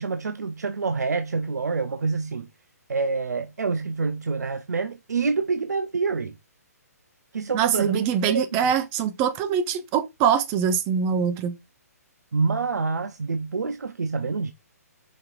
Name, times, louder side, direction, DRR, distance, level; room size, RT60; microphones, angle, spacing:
voice 1, 0.0-2.5 2.9-6.3 7.3-8.6 12.3-14.5, right 4 dB, 85° right, 0.4 m, -27 dB
voice 2, 7.5-11.6, right 8 dB, 25° right, 0.5 m, -23 dB
5.1 x 2.8 x 2.4 m
figure-of-eight pair, 135°, 9 cm